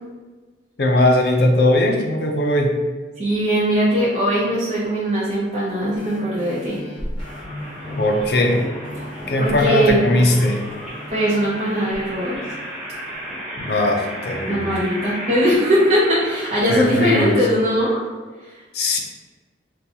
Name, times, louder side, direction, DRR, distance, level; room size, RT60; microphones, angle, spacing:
voice 1, 0.8-2.8 8.0-8.7 9.3-10.7 13.6-14.8 16.7-17.5 18.7-19.0, left 1 dB, 65° left, 2 dB, 0.5 m, -19 dB
voice 2, 3.2-6.8 9.4-10.1 11.1-12.4 14.5-18.0 18.4-18.6, equal, 40° right, -9 dB, 0.6 m, -20 dB
sound 1, 6.0-13.1 13.7-13.8, equal, 30° left, 0.9 m, -36 dB
sound 2, 7.2-17.3, equal, ahead, 0.9 m, -34 dB
4.1 x 2.3 x 2.7 m, 1.3 s
head